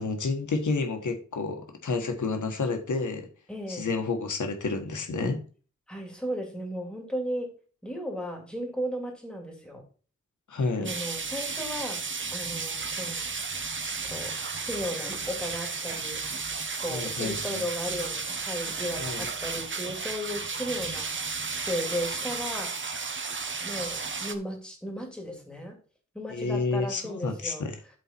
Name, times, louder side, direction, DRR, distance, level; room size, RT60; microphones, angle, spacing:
voice 1, 0.0-3.3 3.7-5.4 10.5-10.9 16.9-17.6 19.0-19.3 26.3-27.7, left 4 dB, 90° left, 4 dB, 1.6 m, -30 dB
voice 2, 3.5-3.9 5.9-7.5 7.8-9.8 10.8-12.0 12.3-13.3 14.0-14.4 14.6-16.2 16.8-22.7 23.6-25.8 26.1-27.7, equal, 5° left, 1 dB, 2.8 m, -35 dB
sound 1, 10.8-24.3, right 4 dB, 40° right, 1.0 m, -33 dB
12.5 x 4.3 x 4.5 m, 0.39 s
wide cardioid pair, 135°, 29 cm